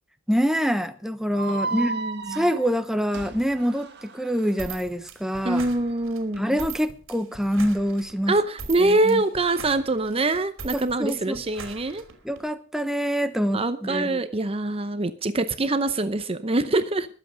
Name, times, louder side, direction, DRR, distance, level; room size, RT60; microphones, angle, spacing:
voice 1, 0.3-2.0 2.3-5.6 6.4-8.4 8.8-9.2 10.7-11.4 12.2-14.2, equal, ahead, 1.0 m, -25 dB
sound 1, 1.3-4.5, right 3 dB, 55° right, 1.7 m, -34 dB
voice 2, 1.5-2.5 5.4-6.6 8.3-12.0 13.5-17.1, right 2 dB, 30° right, 0.8 m, -24 dB
sound 2, 4.6-12.4, right 4 dB, 80° right, 2.9 m, -41 dB
21.0 x 8.0 x 5.2 m
head